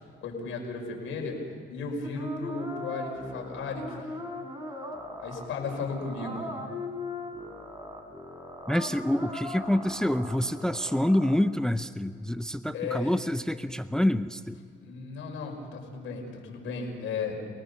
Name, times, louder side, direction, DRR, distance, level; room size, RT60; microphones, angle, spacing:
voice 1, 0.2-1.4 1.7-4.1 5.2-6.5 12.7-13.1 14.8-17.4, left 4 dB, 85° left, 1 dB, 5.5 m, -35 dB
sound 1, 2.0-11.3, left 1 dB, 20° right, 4.0 m, -39 dB
voice 2, 8.7-14.6, left 1 dB, 5° left, 12 dB, 0.6 m, -27 dB
30.0 x 18.5 x 6.9 m, 2.2 s
cardioid pair, 90°, 20 cm